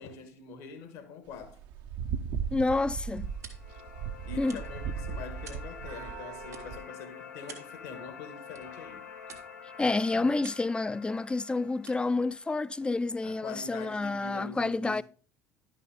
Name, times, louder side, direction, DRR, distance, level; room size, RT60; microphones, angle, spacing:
voice 1, 0.0-1.6 4.3-9.0 10.1-10.3 13.2-15.0, left 5 dB, 65° left, 1.2 m, -44 dB
sound 1, 1.3-6.8, right 7 dB, 60° right, 0.6 m, -37 dB
sound 2, 2.4-13.6, right 5 dB, 85° right, 1.4 m, -55 dB
voice 2, 2.5-3.3 4.4-4.6 9.8-15.0, left 3 dB, 10° left, 0.3 m, -29 dB
sound 3, 3.0-13.1, left 6 dB, 85° left, 0.6 m, -48 dB
11.0 x 5.5 x 3.4 m
figure-of-eight pair, 60°, 8 cm